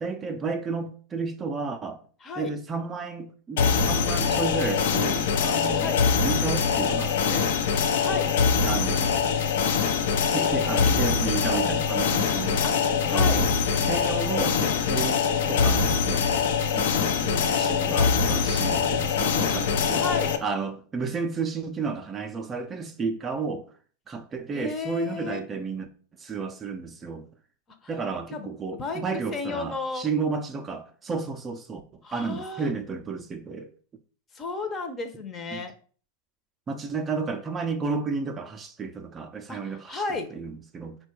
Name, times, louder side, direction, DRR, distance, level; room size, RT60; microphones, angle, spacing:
voice 1, 0.0-2.0 2.4-5.9 6.2-7.9 8.6-9.2 10.2-12.6 13.1-15.2 15.5-16.3 16.7-20.1 20.4-23.7 24.1-25.9 26.2-27.3 27.9-31.8 32.1-33.7 35.5-35.6 36.7-40.0 40.3-41.0, right 4 dB, 20° right, 0.4 m, -32 dB
voice 2, 2.2-2.5 5.7-6.0 7.9-8.3 12.6-12.7 13.0-13.4 19.9-20.4 24.5-25.4 27.8-27.9 28.3-29.0 29.3-30.1 32.0-32.7 34.3-35.7 39.5-40.3, left 3 dB, 25° left, 0.7 m, -33 dB
sound 1, 3.6-20.4, left 6 dB, 75° left, 0.5 m, -23 dB
4.3 x 2.2 x 4.3 m
hypercardioid pair, 125°, 0 cm